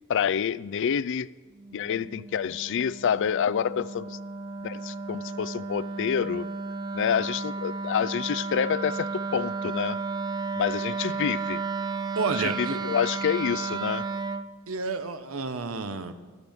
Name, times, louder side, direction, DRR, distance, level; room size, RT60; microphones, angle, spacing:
voice 1, 0.1-1.3 1.7-4.2 4.6-6.5 6.9-10.0 10.6-11.6 12.4-14.1, left 8 dB, 60° left, 0.4 m, -28 dB
Wind instrument woodwind instrument, 1.6-14.5, right 4 dB, 20° right, 0.4 m, -33 dB
voice 2, 12.1-12.8 14.7-16.1, right 4 dB, 75° right, 0.9 m, -30 dB
16.0 x 12.0 x 3.6 m
head